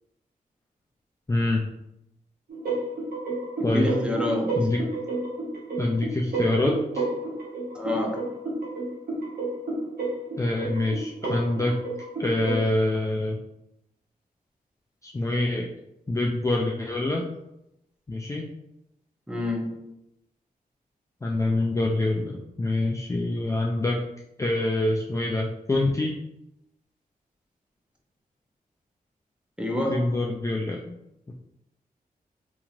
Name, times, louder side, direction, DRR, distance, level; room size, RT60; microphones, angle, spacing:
voice 1, 1.3-1.6 3.6-3.9 4.6-4.8 5.8-7.0 10.4-11.7 12.2-13.4 15.0-15.7 16.1-17.3 18.1-18.5 21.2-24.0 24.4-26.2 29.9-31.0, left 2 dB, 20° left, -1 dB, 0.4 m, -25 dB
sound 1, 2.5-12.6, right 2 dB, 75° right, 1.0 m, -31 dB
voice 2, 3.6-4.7 7.7-8.2 19.3-19.8 29.6-30.1, left 1 dB, 5° right, -1 dB, 0.7 m, -27 dB
2.8 x 2.7 x 2.5 m, 0.84 s
cardioid pair, 55°, 15 cm